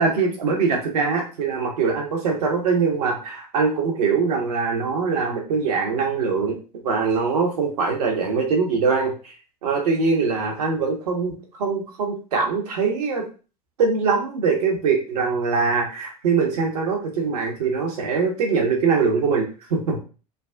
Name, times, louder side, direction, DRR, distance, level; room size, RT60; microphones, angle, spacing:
voice 1, 0.0-6.6 6.8-9.3 9.6-13.2 13.8-20.0, right 5 dB, 70° right, 1 dB, 1.0 m, -22 dB
3.9 x 2.4 x 2.3 m, 0.35 s
figure-of-eight pair, 75°, 21 cm